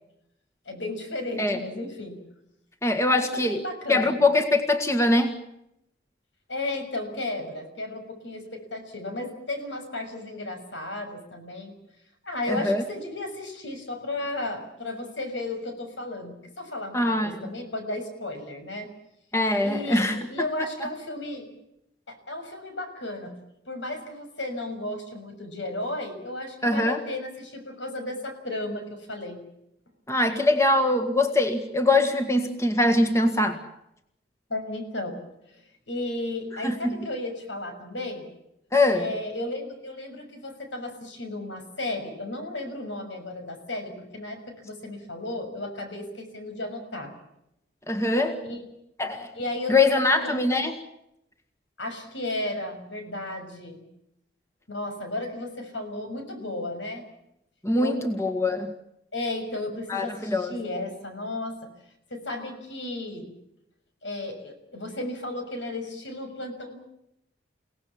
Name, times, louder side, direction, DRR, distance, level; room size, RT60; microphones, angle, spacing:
voice 1, 0.6-2.2 3.1-4.1 6.5-11.7 12.2-18.9 19.6-21.5 22.1-23.3 23.6-29.4 34.5-35.2 35.5-38.3 38.9-47.1 48.4-48.6 49.3-50.6 51.8-53.8 54.7-57.0 57.7-58.0 59.1-61.6 62.1-63.4 64.0-66.8, left 2 dB, 80° left, 6 dB, 6.7 m, -34 dB
voice 2, 2.8-3.6 3.9-5.4 12.5-12.8 16.9-17.4 19.3-20.3 26.6-27.0 30.1-33.6 36.6-36.9 38.7-39.1 47.9-48.4 49.0-49.3 49.7-50.8 57.6-58.7 59.9-60.5, left 2 dB, 15° left, 6 dB, 1.7 m, -23 dB
29.5 x 18.0 x 7.3 m, 0.82 s
head